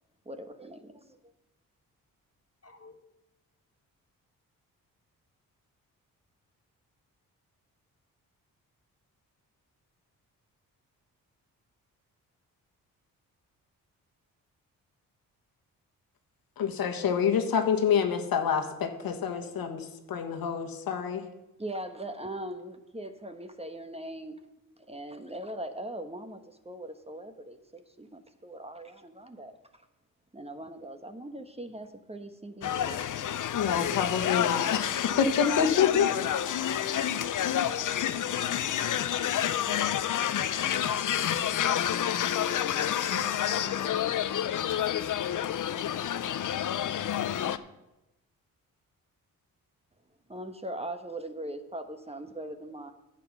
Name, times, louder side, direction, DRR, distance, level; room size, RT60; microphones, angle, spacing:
voice 1, 0.2-1.2 21.6-24.4 24.9-29.5 30.3-33.0 50.3-52.9, right 1 dB, 15° right, 8 dB, 1.2 m, -40 dB
voice 2, 2.6-2.9 41.6-45.1, left 4 dB, 40° left, 6 dB, 1.8 m, -44 dB
voice 3, 16.6-21.2 33.5-36.1 36.4-36.7, left 7 dB, 75° left, 5 dB, 1.5 m, -27 dB
sound 1, 32.6-47.6, left 10 dB, 60° left, 0.7 m, -29 dB
9.9 x 7.6 x 6.1 m, 0.95 s
supercardioid pair, 60°, 35 cm